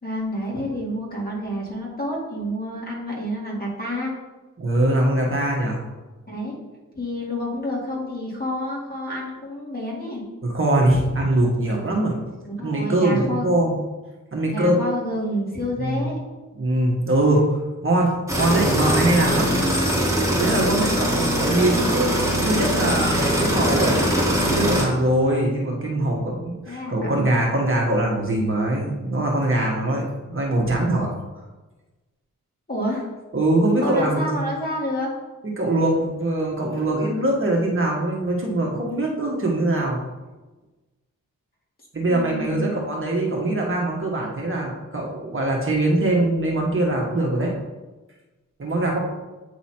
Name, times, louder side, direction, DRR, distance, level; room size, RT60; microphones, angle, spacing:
voice 1, 0.0-4.1 6.3-6.6 7.0-10.2 12.6-13.6 14.5-16.2 26.7-27.2 32.7-33.1 33.8-35.1 42.1-42.8, equal, 30° left, -4 dB, 2.1 m, -29 dB
voice 2, 4.6-5.8 10.4-12.1 12.6-13.7 14.3-14.9 15.8-16.1 16.6-17.5 17.8-19.5 20.3-24.0 24.5-31.1 33.3-34.4 35.6-40.0 41.9-47.5 48.6-49.0, right 1 dB, 40° right, -2 dB, 1.2 m, -22 dB
sound 1, 18.3-24.8, equal, 10° right, 1.7 m, -21 dB
8.5 x 3.0 x 4.3 m, 1.2 s
cardioid pair, 80°, 32 cm